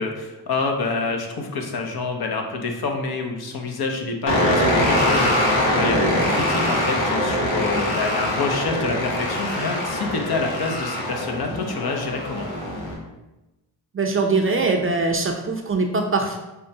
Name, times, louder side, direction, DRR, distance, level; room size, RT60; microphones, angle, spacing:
voice 1, 0.0-12.5, left 3 dB, 55° left, 2 dB, 0.8 m, -27 dB
sound 1, 4.3-12.9, left 1 dB, 85° left, 1.0 m, -23 dB
voice 2, 13.9-16.4, right 3 dB, 30° right, 3 dB, 0.5 m, -22 dB
5.4 x 2.2 x 2.7 m, 1.0 s
supercardioid pair, 50°, 44 cm